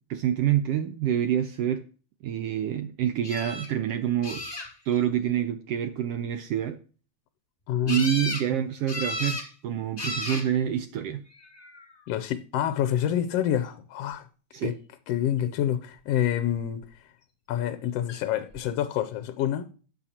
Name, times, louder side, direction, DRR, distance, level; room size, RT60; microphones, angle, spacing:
voice 1, 0.1-1.8 2.2-4.4 4.8-6.8 7.9-11.2 14.5-14.7, right 10 dB, 80° right, 1.4 m, -27 dB
sound 1, 3.2-3.7 4.2-5.0 7.9-8.5 8.9-9.5 10.0-10.5 11.4-11.9 18.1-18.2 18.5-18.6, left 2 dB, 20° left, 1.4 m, -33 dB
voice 2, 7.7-8.1 12.1-14.2 14.6-14.7 15.1-16.8 17.5-19.7, left 10 dB, 75° left, 1.5 m, -27 dB
12.0 x 8.9 x 2.9 m
omnidirectional pair, 3.4 m